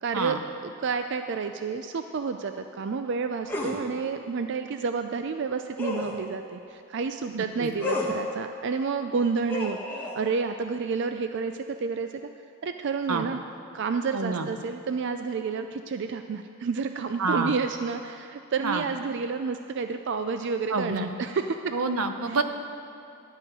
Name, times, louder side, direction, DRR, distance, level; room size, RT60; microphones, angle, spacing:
voice 1, 0.0-12.2 12.6-13.4 13.7-21.7 22.3-22.4, right 5 dB, 55° right, 7 dB, 0.4 m, -30 dB
sound 1, 3.5-3.8 5.8-6.2 7.8-8.2 9.5-10.2, left 2 dB, 10° left, 1.4 m, -31 dB
voice 2, 7.3-7.7 13.1-13.3 14.1-14.5 17.2-17.5 18.6-18.8 20.7-21.1 21.7-22.4, right 3 dB, 85° right, 7 dB, 0.8 m, -28 dB
12.5 x 5.8 x 9.0 m, 2.7 s
head